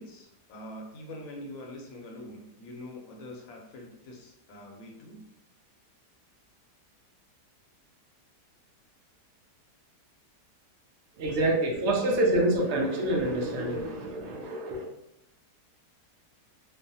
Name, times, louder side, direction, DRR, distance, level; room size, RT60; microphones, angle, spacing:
voice 1, 0.0-5.2, left 1 dB, 65° left, 1 dB, 1.0 m, -44 dB
voice 2, 11.2-14.9, right 1 dB, 80° right, -1 dB, 0.6 m, -27 dB
3.1 x 2.1 x 2.6 m, 0.84 s
omnidirectional pair, 1.8 m